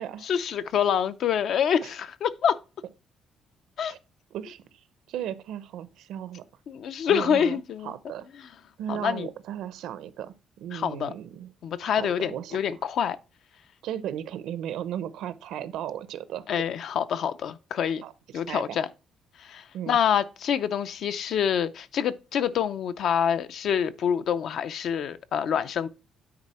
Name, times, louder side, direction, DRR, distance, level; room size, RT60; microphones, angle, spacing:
voice 1, 0.2-2.6 3.8-3.9 6.7-7.9 8.4-8.5 8.9-9.3 10.7-11.1 11.6-13.2 16.5-18.0 18.3-18.9 19.4-25.9, left 8 dB, 60° left, 0.5 m, -26 dB
voice 2, 4.3-4.6 5.1-6.4 7.1-7.6 7.8-8.3 8.8-11.5 11.8-12.6 13.8-16.4 18.0-18.1 18.5-18.8 19.7-20.0, right 10 dB, 85° right, 0.7 m, -35 dB
9.6 x 4.1 x 4.2 m
cardioid pair, 150°, 0 cm